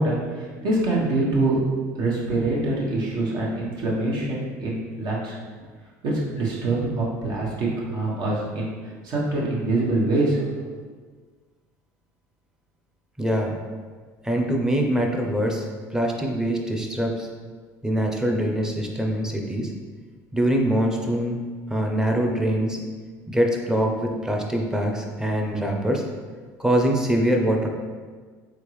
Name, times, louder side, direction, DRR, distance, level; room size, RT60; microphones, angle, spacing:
voice 1, 0.0-1.6 1.9-5.4 6.0-8.7 9.0-10.5, right 2 dB, 60° right, -4 dB, 1.2 m, -24 dB
voice 2, 13.2-13.6 14.2-15.7 15.9-17.3 17.8-19.7 20.3-21.4 21.7-22.8 23.3-26.0 26.6-27.7, right 1 dB, 5° right, 1 dB, 0.7 m, -23 dB
3.7 x 3.6 x 3.2 m, 1.5 s
supercardioid pair, 90°, 8 cm